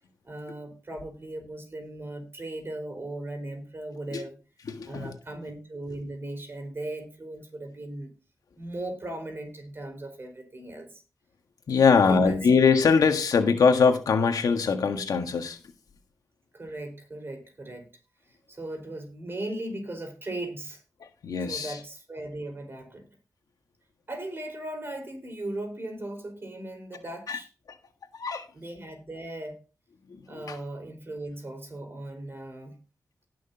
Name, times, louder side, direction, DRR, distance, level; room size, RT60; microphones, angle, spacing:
voice 1, 0.2-4.4 4.8-8.1 8.6-10.9 11.9-12.4 16.5-17.9 18.3-20.8 21.4-23.1 24.1-27.5 28.5-29.6 30.3-32.8, right 1 dB, 40° right, 4.6 m, -38 dB
voice 2, 4.7-5.1 11.7-15.6 21.2-21.7 27.3-27.4 28.1-28.5 30.3-30.6, left 5 dB, 85° left, 1.6 m, -22 dB
18.5 x 6.3 x 2.9 m
wide cardioid pair, 85°, 6 cm